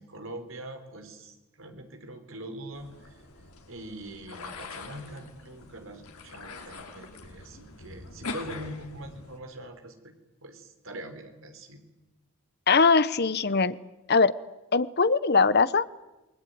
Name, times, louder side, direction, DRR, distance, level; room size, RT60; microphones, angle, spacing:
voice 1, 0.0-3.2 3.7-10.1 10.4-11.8, right 1 dB, 60° right, 7 dB, 3.7 m, -43 dB
sound 1, 2.7-9.4, left 3 dB, 80° left, 3.5 m, -43 dB
voice 2, 12.7-13.8 14.1-14.3 14.7-15.9, left 4 dB, 45° left, 16 dB, 0.8 m, -21 dB
28.0 x 20.0 x 9.4 m, 1.1 s
head